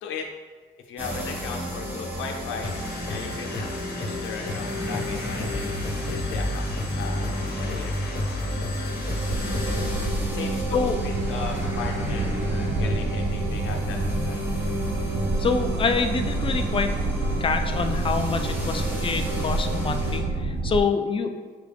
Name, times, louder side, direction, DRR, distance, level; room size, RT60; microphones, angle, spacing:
voice 1, 0.9-2.7 3.1-6.7 7.0-8.1 10.3-14.4, left 5 dB, 85° left, 1 dB, 0.7 m, -37 dB
sound 1, 1.0-20.2, equal, 10° right, 0.9 m, -31 dB
sound 2, 2.6-10.2, left 4 dB, 50° left, 0.8 m, -35 dB
sound 3, 9.3-20.8, right 3 dB, 40° right, 0.4 m, -29 dB
voice 2, 15.4-16.9 17.4-21.3, left 5 dB, 25° left, 7 dB, 0.4 m, -26 dB
5.7 x 2.4 x 3.3 m, 1.5 s
cardioid pair, 90°, 20 cm